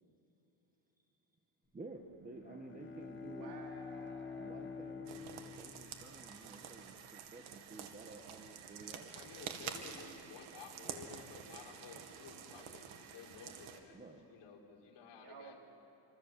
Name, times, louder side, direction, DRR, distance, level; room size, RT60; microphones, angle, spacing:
voice 1, 1.7-3.6 4.4-9.3 13.9-14.3, right 3 dB, 15° right, 2 dB, 1.6 m, -52 dB
Bowed string instrument, 2.1-6.8, left 5 dB, 25° left, 1.8 m, -48 dB
voice 2, 3.2-4.7 15.2-15.6, right 4 dB, 55° right, 1 dB, 4.0 m, -53 dB
sound 1, 5.1-13.8, right 8 dB, 85° right, 2.4 m, -49 dB
voice 3, 9.1-14.0 14.3-15.6, left 5 dB, 60° left, -1 dB, 4.5 m, -54 dB
28.0 x 26.0 x 7.7 m, 3.0 s
cardioid pair, 145°, 47 cm